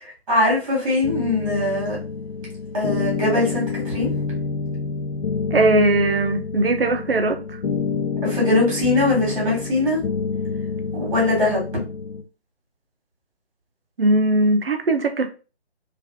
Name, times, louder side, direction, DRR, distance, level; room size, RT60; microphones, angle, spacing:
voice 1, 0.3-2.0 2.7-4.1 8.2-10.0 10.9-11.7, left 2 dB, 30° right, 1.2 m, -21 dB
sound 1, 1.0-12.2, left 5 dB, 65° left, 0.5 m, -28 dB
voice 2, 5.5-7.6 14.0-15.3, right 2 dB, 60° right, 0.5 m, -19 dB
2.7 x 2.4 x 2.2 m
figure-of-eight pair, 150°, 33 cm